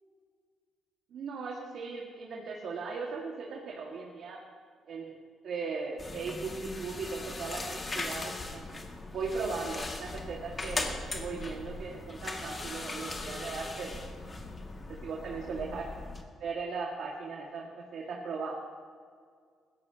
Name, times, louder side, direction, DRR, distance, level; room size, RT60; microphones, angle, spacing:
voice 1, 1.1-4.4 4.9-5.2 5.4-8.6 9.1-14.1 15.0-15.9 16.4-18.5, right 4 dB, 70° right, -2 dB, 1.9 m, -38 dB
sound 1, 6.0-16.2, left 2 dB, 30° left, 2.1 m, -39 dB
20.5 x 16.5 x 2.9 m, 2.1 s
cardioid pair, 90°, 0 cm